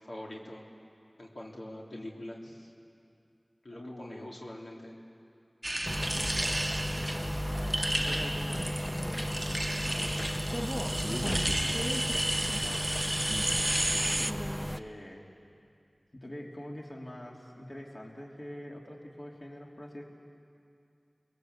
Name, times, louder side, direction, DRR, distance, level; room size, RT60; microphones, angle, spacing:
voice 1, 0.1-0.7 1.2-2.7 3.6-5.0, left 1 dB, 85° left, -3 dB, 3.5 m, -44 dB
voice 2, 3.7-4.3 6.7-11.8 12.3-12.9 13.3-15.2 16.1-20.1, left 1 dB, 50° left, -2 dB, 3.3 m, -46 dB
sound 1, 5.6-14.3, right 1 dB, 20° right, 0.8 m, -32 dB
sound 2, 5.8-14.8, equal, 10° left, 0.8 m, -34 dB
29.5 x 21.0 x 8.3 m, 2.5 s
wide cardioid pair, 60°, 0 cm